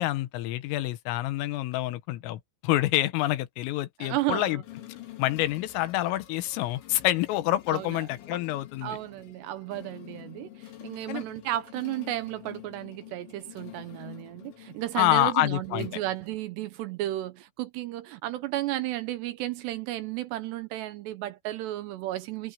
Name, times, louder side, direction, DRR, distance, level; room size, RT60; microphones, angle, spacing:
voice 1, 0.0-4.6 5.2-9.0 11.1-11.2 15.0-15.9, left 16 dB, 85° left, 3.8 m, -27 dB
voice 2, 4.0-4.6 7.7-8.0 8.8-22.5, right 15 dB, 80° right, 2.6 m, -33 dB
sound 1, 4.6-16.9, left 13 dB, 65° left, 4.7 m, -48 dB
omnidirectional pair, 5.8 m